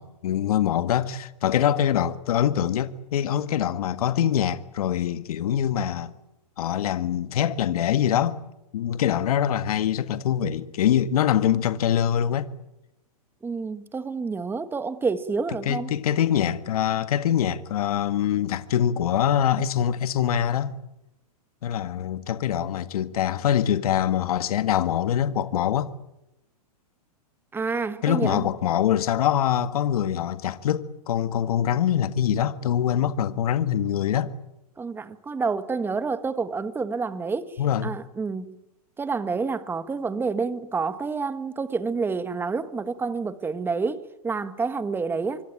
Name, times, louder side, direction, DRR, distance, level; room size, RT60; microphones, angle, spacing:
voice 1, 0.0-6.1 6.6-8.4 8.7-12.5 15.6-20.7 21.6-25.9 28.0-34.3 37.6-37.9, left 10 dB, 65° left, 1.7 m, -24 dB
voice 2, 13.4-15.9 27.5-28.5 34.8-37.5 37.8-38.5 39.0-45.4, right 4 dB, 10° right, 1.5 m, -28 dB
26.0 x 24.5 x 8.9 m
hypercardioid pair, 125°, 20 cm